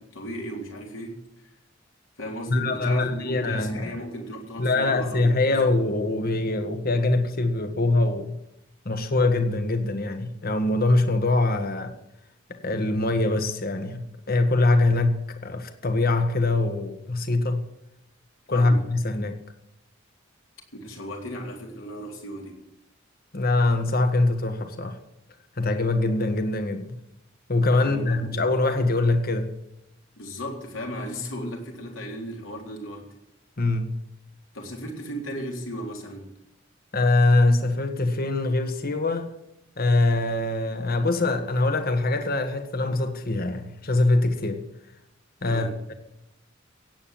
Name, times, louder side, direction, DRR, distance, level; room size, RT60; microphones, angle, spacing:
voice 1, 0.0-1.5 2.2-5.6 18.5-18.9 20.7-22.6 27.8-28.3 30.2-33.1 34.5-36.3 45.4-45.8, equal, 75° left, 3.8 m, -36 dB
voice 2, 2.5-3.9 4.6-8.3 8.8-11.9 12.5-15.1 15.4-17.6 18.5-19.4 23.3-25.0 25.6-27.0 27.5-29.5 33.6-33.9 36.9-39.3 39.8-44.6 45.4-45.9, left 2 dB, 50° left, 1.5 m, -23 dB
16.5 x 8.8 x 7.6 m
head